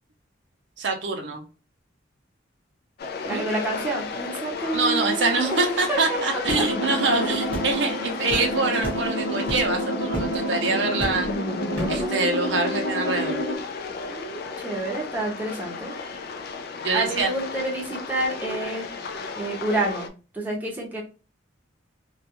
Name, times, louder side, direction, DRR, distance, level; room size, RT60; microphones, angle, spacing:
voice 1, 0.8-1.4 3.3-3.5 4.7-11.3 11.9-13.4 16.8-17.3, right 3 dB, 65° right, 3 dB, 0.5 m, -25 dB
sound 1, 3.0-20.1, left 4 dB, 55° left, 0.3 m, -34 dB
voice 2, 3.2-6.7 7.2-7.4 14.1-15.9 16.9-18.9 19.4-21.0, right 2 dB, 10° right, -3 dB, 0.6 m, -29 dB
sound 2, 6.4-13.6, equal, 70° left, 0.7 m, -28 dB
sound 3, 6.5-6.7 7.5-7.7 8.3-8.5 8.8-9.1 9.5-9.7 10.1-10.4 11.0-11.3 11.7-12.0, equal, 5° left, 1.0 m, -32 dB
2.3 x 2.2 x 2.8 m, 0.32 s
head